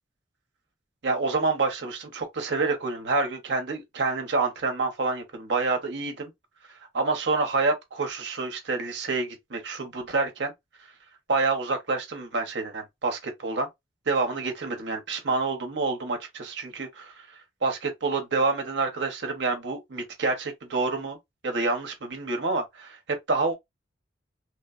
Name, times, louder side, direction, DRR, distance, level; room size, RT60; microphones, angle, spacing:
voice 1, 1.0-6.3 6.9-10.5 11.3-13.7 14.1-17.3 17.6-21.2 21.4-23.0 23.3-23.5, right 3 dB, 65° right, 0.7 m, -28 dB
3.1 x 2.1 x 2.3 m
head